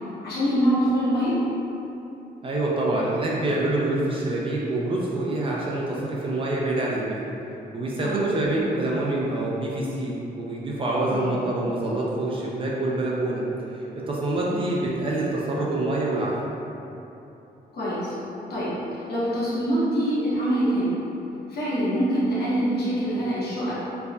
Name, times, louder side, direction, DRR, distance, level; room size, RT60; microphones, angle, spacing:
voice 1, 0.2-1.4 8.0-8.2 11.0-11.4 14.5-14.7 17.7-18.2 18.5-21.0 21.5-23.8, right 1 dB, 80° left, -10 dB, 0.9 m, -25 dB
voice 2, 2.4-7.2 7.7-13.5 13.7-16.5, right 2 dB, 35° right, -5 dB, 0.4 m, -26 dB
4.4 x 2.2 x 2.6 m, 2.9 s
wide cardioid pair, 145°, 17 cm